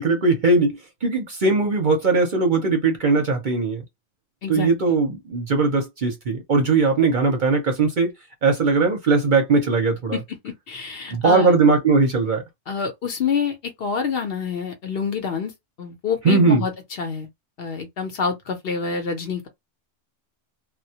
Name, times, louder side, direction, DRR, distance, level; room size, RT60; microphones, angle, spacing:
voice 1, 0.0-3.8 4.5-8.1 8.4-10.2 11.1-12.4 16.2-16.6, right 3 dB, 50° right, 0.7 m, -19 dB
voice 2, 4.4-5.0 10.1-11.5 12.7-15.5 15.8-16.7 17.0-17.3 17.6-19.5, left 6 dB, 60° left, 0.8 m, -27 dB
2.2 x 2.0 x 2.7 m
omnidirectional pair, 1.3 m